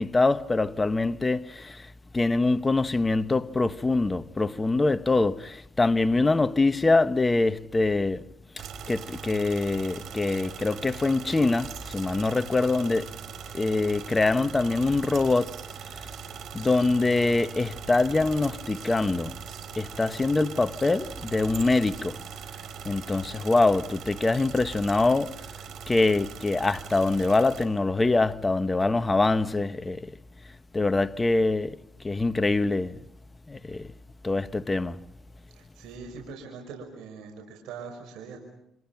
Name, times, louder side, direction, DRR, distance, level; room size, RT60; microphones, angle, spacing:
voice 1, 0.0-1.9 2.1-8.3 8.6-13.1 13.5-15.6 16.5-19.3 19.7-22.2 22.8-25.4 25.9-30.1 30.7-31.8 32.0-33.0 33.5-33.9 34.2-35.0, left 3 dB, 20° left, 1.2 m, -24 dB
sound 1, 8.6-27.6, right 8 dB, 70° right, 4.9 m, -41 dB
voice 2, 35.5-38.4, right 5 dB, 90° right, 5.9 m, -42 dB
29.5 x 27.0 x 6.0 m
cardioid pair, 85°, 0 cm